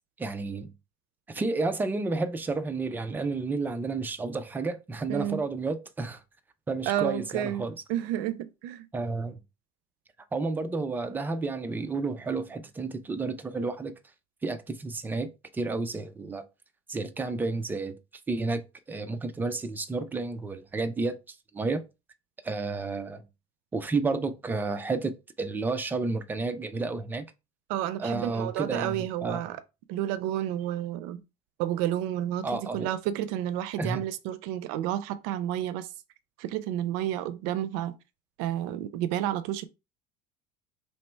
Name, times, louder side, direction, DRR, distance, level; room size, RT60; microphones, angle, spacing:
voice 1, 0.2-0.7 1.3-6.2 6.7-7.8 8.9-9.4 10.3-13.9 14.4-16.5 16.9-18.0 18.3-21.8 22.4-23.2 23.7-27.3 28.0-29.4 32.4-32.9 33.8-34.0, right 3 dB, 10° right, 0.3 m, -31 dB
voice 2, 5.1-5.4 6.9-7.6 7.9-8.9 27.7-29.6 29.9-31.2 31.6-35.9 36.4-37.9 38.4-39.7, right 12 dB, 85° right, 0.5 m, -30 dB
3.2 x 3.0 x 4.4 m
cardioid pair, 165°, 18 cm